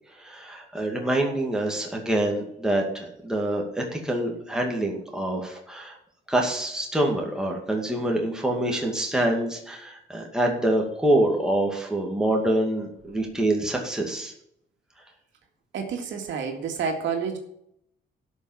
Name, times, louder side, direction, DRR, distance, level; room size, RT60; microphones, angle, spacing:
voice 1, 0.2-6.0 6.3-14.3, right 1 dB, 5° right, 0 dB, 2.2 m, -26 dB
voice 2, 15.7-17.4, right 6 dB, 80° right, 3 dB, 2.1 m, -29 dB
12.5 x 5.6 x 7.3 m, 0.75 s
cardioid pair, 145°, 19 cm